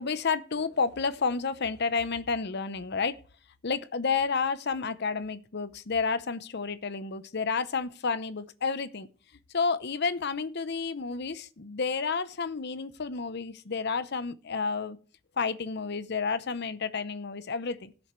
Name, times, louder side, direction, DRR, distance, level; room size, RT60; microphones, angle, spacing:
voice 1, 0.0-3.2 3.6-9.1 9.5-15.0 15.4-17.9, left 5 dB, 55° left, 0.8 m, -30 dB
17.5 x 7.1 x 3.2 m
head